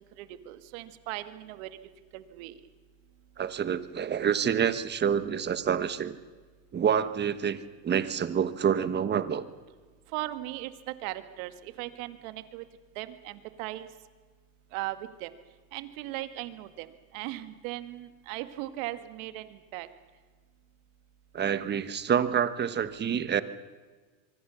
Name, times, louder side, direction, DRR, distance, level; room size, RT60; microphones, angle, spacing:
voice 1, 0.2-1.7 2.1-2.5 10.1-10.7 11.0-12.6 13.0-13.9 14.7-15.3 15.7-16.9 17.1-19.9, right 16 dB, 60° right, 10 dB, 2.1 m, -38 dB
voice 2, 3.4-6.2 6.7-7.6 7.8-9.4 21.3-23.4, right 8 dB, 25° right, 13 dB, 1.3 m, -27 dB
25.5 x 23.5 x 7.1 m, 1.4 s
supercardioid pair, 135°, 45 cm